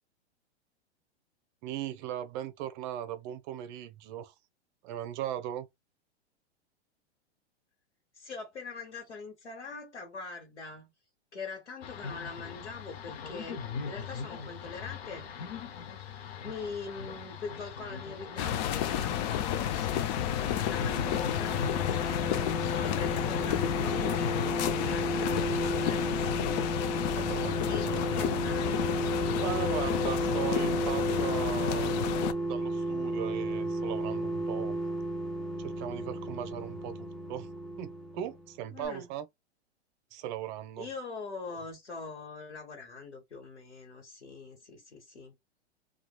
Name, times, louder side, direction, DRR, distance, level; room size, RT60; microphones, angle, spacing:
voice 1, 1.6-4.3 4.8-5.7 27.1-28.4 29.4-32.0 32.5-34.8 35.6-37.5 37.8-39.3 40.1-40.9, right 11 dB, 45° right, 0.7 m, -38 dB
voice 2, 8.1-10.9 11.3-15.3 15.7-22.3 22.6-27.0 27.7-28.8 38.7-39.1 40.8-45.3, left 4 dB, 90° left, 1.1 m, -43 dB
sound 1, 11.8-24.5, left 6 dB, 65° left, 0.8 m, -40 dB
sound 2, 18.4-32.3, left 10 dB, 40° left, 0.5 m, -31 dB
sound 3, 20.3-38.6 38.8-38.9, right 2 dB, ahead, 0.7 m, -34 dB
3.0 x 2.3 x 2.2 m
hypercardioid pair, 105°, 34 cm